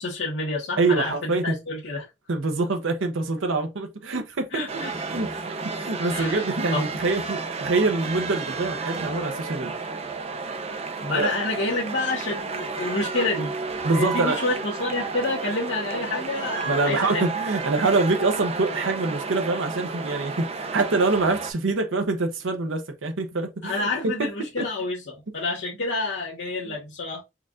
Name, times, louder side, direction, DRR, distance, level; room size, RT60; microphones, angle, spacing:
voice 1, 0.0-2.1 4.5-5.2 6.1-6.4 6.7-6.8 10.5-10.6 11.0-13.5 13.9-17.3 23.6-27.2, left 2 dB, 65° left, 1.2 m, -28 dB
voice 2, 0.8-1.6 2.3-4.5 5.1-5.3 5.7-9.7 11.2-11.3 13.8-14.4 16.7-24.3 24.6-24.7 26.7-26.8, right 3 dB, 85° right, 0.7 m, -25 dB
sound 1, 4.7-21.5, right 4 dB, 35° right, 0.6 m, -32 dB
4.5 x 2.4 x 3.6 m
head